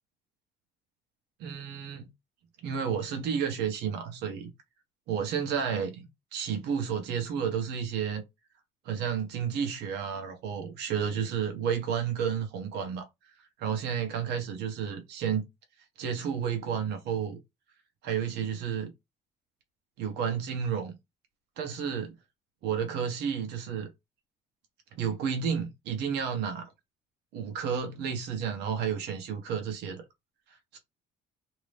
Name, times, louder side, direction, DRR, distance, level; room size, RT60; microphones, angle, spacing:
voice 1, 1.4-2.1 2.6-4.5 5.1-8.2 8.8-13.1 13.6-15.5 16.0-17.4 18.0-18.9 20.0-21.0 21.6-22.1 22.6-23.9 25.0-26.7 27.3-30.0 30.7-30.8, right 7 dB, 80° right, 1.0 m, -31 dB
2.9 x 2.7 x 3.3 m
cardioid pair, 110°, 17 cm